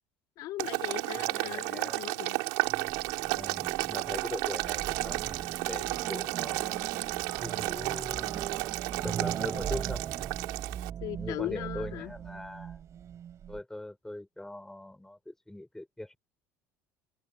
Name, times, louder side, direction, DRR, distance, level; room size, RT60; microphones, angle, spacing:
voice 1, 0.4-2.4 11.0-12.1, left 15 dB, 65° left, 2.8 m, -38 dB
Boiling, 0.6-10.9, right 26 dB, 75° right, 3.2 m, -33 dB
voice 2, 1.2-2.1 3.3-7.1 7.4-8.4 9.0-10.0 11.1-12.8 13.5-16.2, left 1 dB, 5° left, 4.3 m, -41 dB
sound 1, 2.6-13.6, right 9 dB, 45° right, 4.3 m, -39 dB
supercardioid pair, 90°, 7 cm